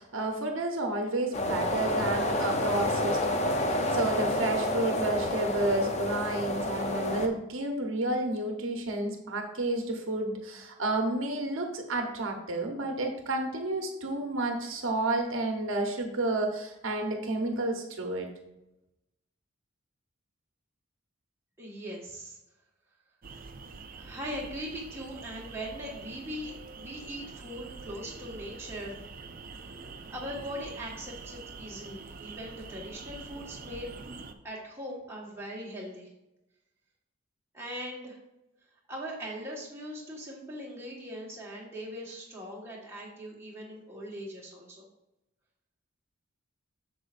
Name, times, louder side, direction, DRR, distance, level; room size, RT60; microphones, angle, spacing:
voice 1, 0.0-18.3, right 2 dB, 70° right, 3 dB, 1.0 m, -31 dB
sound 1, 1.3-7.3, left 1 dB, 30° left, 0.6 m, -29 dB
voice 2, 21.6-22.4 24.0-29.0 30.1-33.9 34.4-36.1 37.5-38.2 38.9-44.9, equal, 10° right, -4 dB, 1.6 m, -40 dB
sound 2, 23.2-34.3, right 4 dB, 40° right, 0.5 m, -45 dB
8.0 x 6.4 x 2.6 m, 0.90 s
head